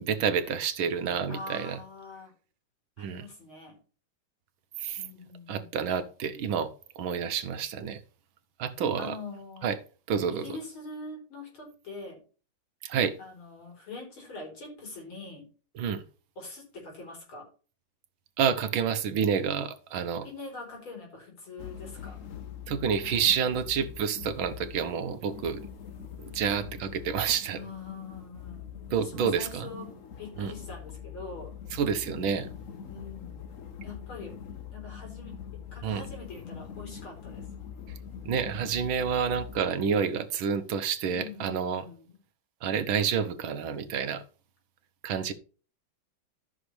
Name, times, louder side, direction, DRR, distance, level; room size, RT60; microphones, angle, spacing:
voice 1, 0.0-1.8 3.0-3.2 4.8-5.0 5.5-8.0 8.6-9.2 9.6-9.8 10.1-10.6 12.8-13.2 15.8-16.0 18.4-20.3 22.7-25.6 26.2-27.6 28.9-29.7 30.4-30.5 31.7-32.5 35.8-36.0 38.3-41.9 42.6-44.2 45.0-45.3, right 7 dB, 75° right, 1.8 m, -29 dB
voice 2, 1.3-2.3 3.0-3.8 5.0-5.8 9.0-9.8 10.3-12.2 13.2-15.5 16.4-17.5 20.2-22.2 27.5-31.5 32.9-33.4 33.8-34.3 34.7-35.4 35.7-37.4 41.1-42.2, left 3 dB, 75° left, 4.8 m, -43 dB
sound 1, 21.6-39.6, left 8 dB, 55° left, 1.0 m, -43 dB
13.5 x 6.3 x 3.3 m
omnidirectional pair, 2.3 m